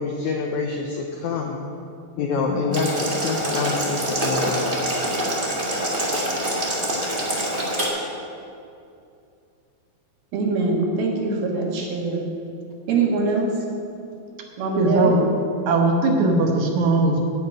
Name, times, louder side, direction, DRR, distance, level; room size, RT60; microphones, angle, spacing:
voice 1, 0.0-1.6 2.2-4.7, left 4 dB, 90° left, 2 dB, 1.7 m, -26 dB
Boiling, 2.7-7.9, equal, 35° right, 0.8 m, -25 dB
voice 2, 10.3-12.2 12.9-13.5 14.6-15.2, right 4 dB, 90° right, -1 dB, 3.6 m, -23 dB
voice 3, 14.8-15.2 15.7-17.2, right 2 dB, 65° right, 1 dB, 2.3 m, -19 dB
11.5 x 5.7 x 8.7 m, 2.6 s
omnidirectional pair, 4.3 m